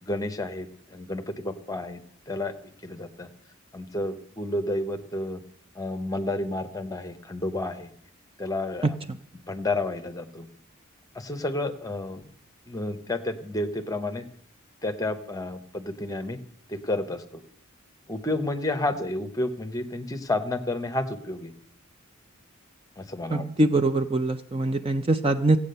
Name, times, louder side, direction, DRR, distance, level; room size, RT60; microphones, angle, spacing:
voice 1, 0.0-2.0 2.3-2.5 2.8-3.3 3.7-5.4 5.8-7.9 8.4-8.9 9.5-10.5 11.1-12.2 12.7-14.2 14.8-16.4 16.7-17.4 18.1-21.5 23.0-23.5, left 2 dB, 15° left, 8 dB, 0.9 m, -30 dB
voice 2, 8.8-9.2 23.3-25.6, right 2 dB, 25° right, 9 dB, 0.4 m, -23 dB
15.5 x 8.5 x 6.7 m, 0.64 s
head